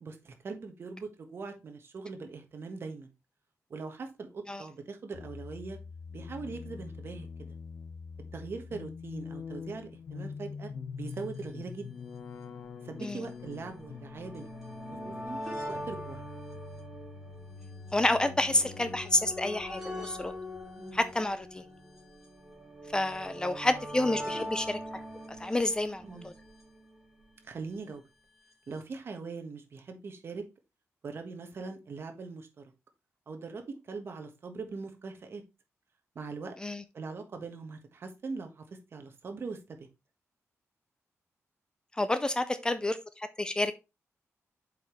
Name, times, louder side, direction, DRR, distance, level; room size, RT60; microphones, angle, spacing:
voice 1, 0.0-3.1 3.7-5.8 6.1-7.3 8.3-10.7 11.0-11.9 12.8-14.5 15.0-15.4 15.7-16.2 20.8-21.0 26.0-26.3 27.4-28.0 28.7-30.4 31.0-32.6 33.3-35.4 36.1-36.5 36.9-38.6 38.9-39.8, right 4 dB, 50° right, 5 dB, 1.4 m, -41 dB
sound 1, 5.1-21.1, left 5 dB, 65° left, 0.9 m, -45 dB
sound 2, 11.1-11.2 11.3-11.4 12.3-27.5 28.5-28.6 28.8-28.9, equal, 5° right, 2.9 m, -43 dB
voice 2, 17.9-20.3 20.9-21.6 22.9-24.8 25.4-26.3 36.6-36.8 42.0-43.7, left 1 dB, 15° left, 11 dB, 0.5 m, -29 dB
7.6 x 5.1 x 3.1 m, 0.25 s
wide cardioid pair, 140°, 5 cm